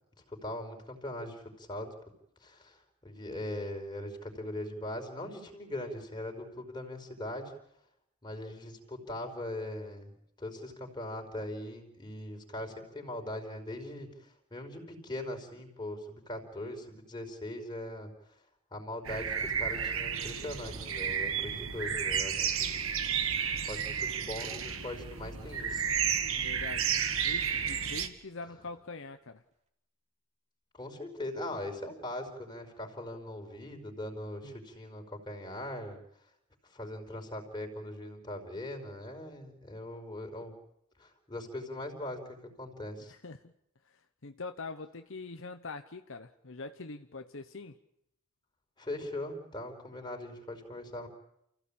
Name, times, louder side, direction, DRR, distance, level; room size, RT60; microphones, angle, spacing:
voice 1, 0.3-1.9 2.4-7.5 8.2-10.1 10.4-18.1 18.7-22.8 23.1-23.2 23.7-25.9 30.7-36.0 36.7-40.5 41.0-43.1 48.8-51.1, left 1 dB, 20° left, 2 dB, 5.0 m, -40 dB
sound 1, 19.1-28.1, right 7 dB, 65° right, 2.0 m, -32 dB
sound 2, 24.4-24.8 25.3-27.5 28.0-28.1, right 1 dB, 30° right, 3.4 m, -56 dB
voice 2, 26.4-26.9 27.2-29.4 34.4-34.5 43.1-43.5 43.8-47.8, left 3 dB, 60° left, 8 dB, 1.1 m, -44 dB
29.0 x 16.5 x 8.8 m, 0.78 s
head